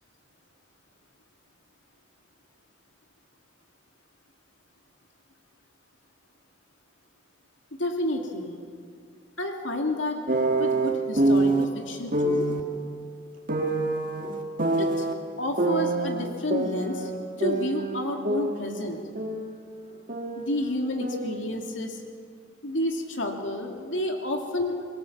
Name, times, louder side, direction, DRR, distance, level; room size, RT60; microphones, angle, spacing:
voice 1, 7.7-8.6 9.4-10.2 10.6-12.5 14.8-15.1 15.4-17.1 17.4-19.0 20.4-22.0 22.6-25.0, left 1 dB, 80° left, 3 dB, 2.3 m, -30 dB
sound 1, 10.3-11.6 12.1-12.6 13.5-15.1 15.6-17.1 17.4-19.6 19.8-21.4, right 2 dB, 45° right, 1.9 m, -26 dB
25.0 x 22.0 x 7.1 m, 2.2 s
head